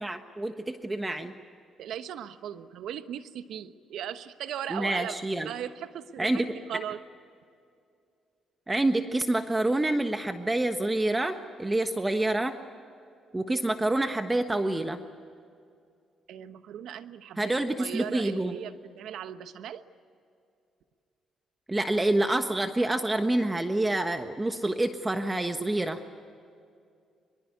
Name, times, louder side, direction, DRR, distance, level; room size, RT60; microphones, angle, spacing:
voice 1, 0.0-1.3 4.7-5.5 6.2-6.4 8.7-12.5 13.3-15.0 17.4-18.6 21.7-26.0, right 2 dB, 15° right, 7 dB, 1.3 m, -27 dB
voice 2, 1.8-7.0 16.3-19.8, right 9 dB, 80° right, 11 dB, 1.1 m, -38 dB
24.0 x 23.0 x 9.6 m, 2.4 s
cardioid pair, 90°, 0 cm